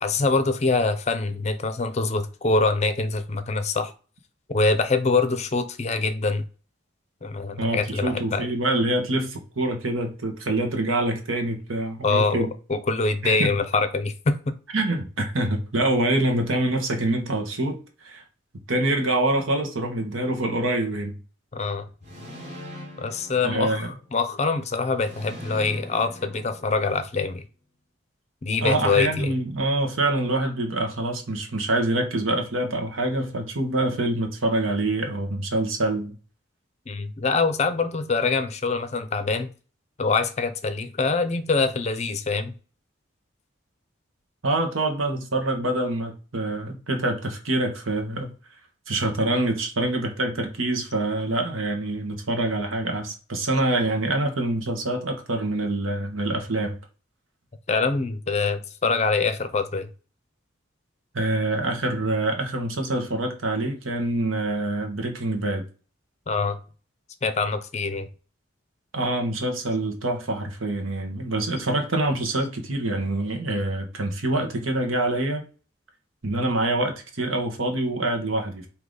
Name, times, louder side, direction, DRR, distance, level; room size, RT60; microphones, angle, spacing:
voice 1, 0.0-3.9 4.5-6.4 7.2-8.5 12.0-14.5 21.5-21.8 23.0-27.4 28.4-29.3 36.9-39.5 40.0-42.5 57.7-59.9 66.3-66.6 67.2-68.1, left 3 dB, 35° left, 0.5 m, -24 dB
voice 2, 7.6-12.5 13.2-13.5 14.7-18.2 18.7-21.2 23.4-24.0 28.6-36.1 44.4-48.3 48.9-56.7 61.1-65.6 68.9-75.4 76.2-78.7, right 2 dB, 85° right, 1.2 m, -25 dB
sound 1, 22.0-24.2 25.0-27.2, left 1 dB, 35° right, 1.3 m, -42 dB
4.8 x 2.8 x 3.8 m
head